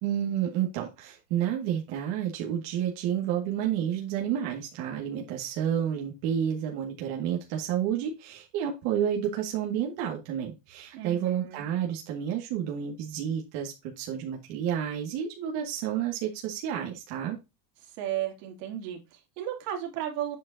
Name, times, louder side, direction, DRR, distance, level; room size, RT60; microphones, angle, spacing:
voice 1, 0.0-17.4, right 9 dB, 60° right, 2.1 m, -30 dB
voice 2, 10.9-11.7 17.8-20.4, right 11 dB, 85° right, 3.0 m, -34 dB
8.6 x 6.3 x 2.7 m
cardioid pair, 165°, 47 cm